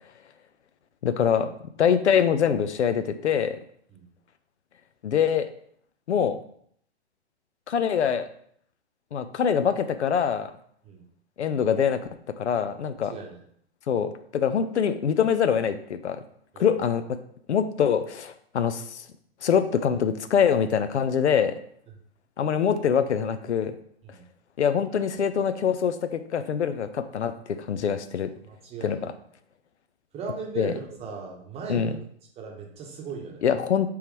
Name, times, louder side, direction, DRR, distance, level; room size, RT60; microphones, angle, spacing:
voice 1, 1.0-1.5 1.8-3.6 5.0-5.5 6.1-6.4 7.7-8.3 9.1-10.5 11.4-12.0 12.4-13.1 13.9-16.2 16.6-17.0 17.5-19.0 19.4-21.5 22.4-23.7 24.6-28.3 28.8-29.0 30.6-30.7 31.7-31.9 33.4-33.9, left 7 dB, 85° left, 11 dB, 0.5 m, -24 dB
voice 2, 13.0-13.4 16.5-16.7 24.0-24.2 28.4-29.1 30.1-32.0 32.4-33.4, right 5 dB, 20° right, 0 dB, 0.9 m, -38 dB
3.5 x 3.0 x 4.5 m, 0.64 s
figure-of-eight pair, 115°, 34 cm